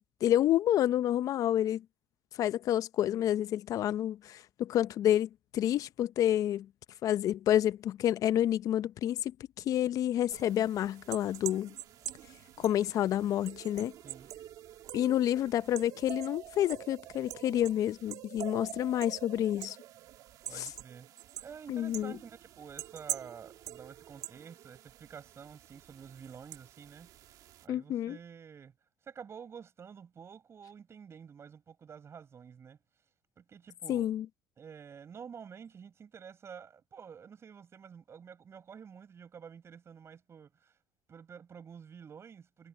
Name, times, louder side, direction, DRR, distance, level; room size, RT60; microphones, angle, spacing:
voice 1, 0.0-1.8 2.4-6.7 7.0-9.3 9.6-11.7 12.6-13.9 14.9-19.8 20.6-20.7 21.7-22.1 27.7-28.2 33.9-34.3, left 11 dB, 60° left, 0.8 m, -29 dB
sound 1, 10.3-27.6, right 13 dB, 65° right, 2.1 m, -45 dB
voice 2, 20.5-21.1 21.4-27.1 27.6-28.7 29.0-32.8 33.4-34.1 34.6-40.7 41.1-42.7, right 7 dB, 40° right, 6.7 m, -49 dB
supercardioid pair, 75°, 7 cm